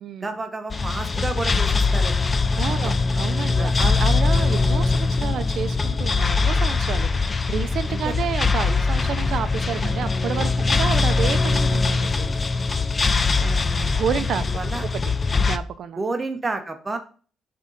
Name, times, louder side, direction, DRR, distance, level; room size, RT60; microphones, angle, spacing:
voice 1, 0.2-2.3 2.7-2.9 3.6-3.8 7.9-8.1 12.7-12.9 13.3-13.4 14.5-14.9 16.0-17.0, right 3 dB, 25° right, 6 dB, 0.9 m, -30 dB
sound 1, 0.7-15.6, left 4 dB, 30° left, 0.4 m, -22 dB
voice 2, 2.6-12.4 13.0-14.4 15.3-16.0, right 8 dB, 65° right, 12 dB, 0.6 m, -30 dB
6.4 x 3.7 x 5.3 m, 0.40 s
cardioid pair, 90°, 0 cm